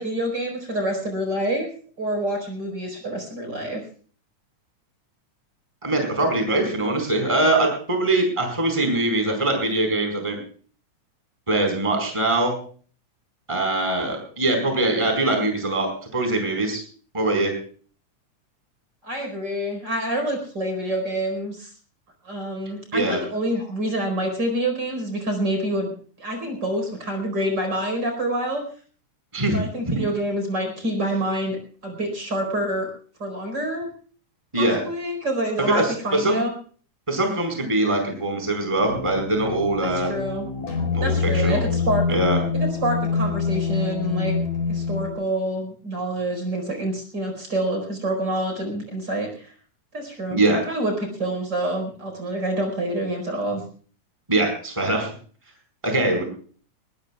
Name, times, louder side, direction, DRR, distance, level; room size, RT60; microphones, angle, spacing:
voice 1, 0.0-1.7 2.0-3.8 19.0-21.7 22.2-25.9 26.2-28.7 29.5-31.6 31.8-32.9 33.2-33.9 34.6-36.5 39.8-40.5 41.0-42.0 42.5-44.3 44.7-49.5 49.9-50.9 51.2-53.6, right 1 dB, 35° right, 4 dB, 5.2 m, -27 dB
voice 2, 5.8-10.4 11.5-12.5 13.5-16.8 17.1-17.5 22.9-23.2 29.3-29.6 29.9-30.0 34.5-34.8 35.7-35.8 36.2-36.4 37.1-40.1 40.9-41.6 42.1-42.4 50.3-50.6 54.3-55.1 55.8-56.2, right 2 dB, 10° right, 4 dB, 4.5 m, -22 dB
sound 1, 38.8-45.1, left 5 dB, 75° left, 6.0 m, -25 dB
21.0 x 21.0 x 2.3 m, 0.43 s
omnidirectional pair, 3.4 m